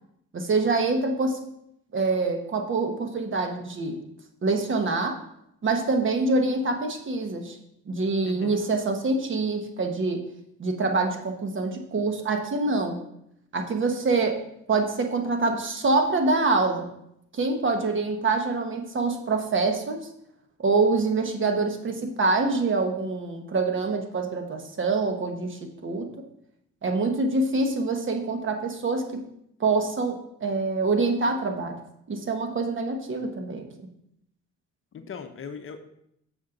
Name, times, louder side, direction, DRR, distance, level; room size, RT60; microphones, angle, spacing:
voice 1, 0.3-1.4 1.9-4.0 4.4-5.2 5.6-7.6 7.9-10.2 10.6-13.0 13.5-14.4 14.7-16.9 17.3-20.0 20.6-26.1 26.8-29.2 29.6-31.8 32.1-33.7, right 3 dB, 40° right, 4 dB, 1.2 m, -25 dB
voice 2, 8.2-8.6 34.9-35.8, left 6 dB, 45° left, 7 dB, 0.8 m, -39 dB
7.3 x 6.4 x 3.8 m, 0.75 s
cardioid pair, 90°, 30 cm